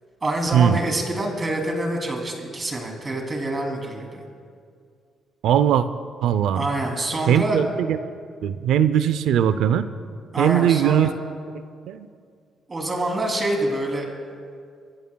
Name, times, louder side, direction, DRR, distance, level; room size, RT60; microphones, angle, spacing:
voice 1, 0.2-4.3 6.5-7.6 10.3-11.1 12.7-14.1, right 1 dB, 30° right, 1 dB, 2.9 m, -26 dB
voice 2, 5.4-5.9 6.2-6.7 7.3-8.0 8.4-9.9 10.4-11.1 11.9-12.1, right 9 dB, 80° right, 13 dB, 0.5 m, -19 dB
27.0 x 14.0 x 2.3 m, 2.2 s
cardioid pair, 90°, 0 cm